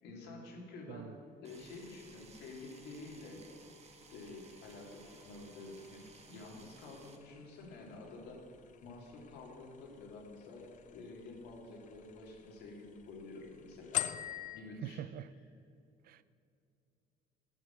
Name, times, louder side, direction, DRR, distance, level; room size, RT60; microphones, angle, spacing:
voice 1, 0.0-3.4 4.1-6.0 6.3-8.4 8.8-14.2 14.5-15.4, left 3 dB, 80° left, 2.5 m, -49 dB
sound 1, 1.4-7.2, right 4 dB, 40° right, 1.1 m, -59 dB
sound 2, 1.6-14.6, left 11 dB, 50° left, 0.5 m, -47 dB
voice 2, 14.8-15.3 16.1-16.2, right 11 dB, 60° right, 0.4 m, -43 dB
9.7 x 9.1 x 5.8 m
cardioid pair, 110°, 17 cm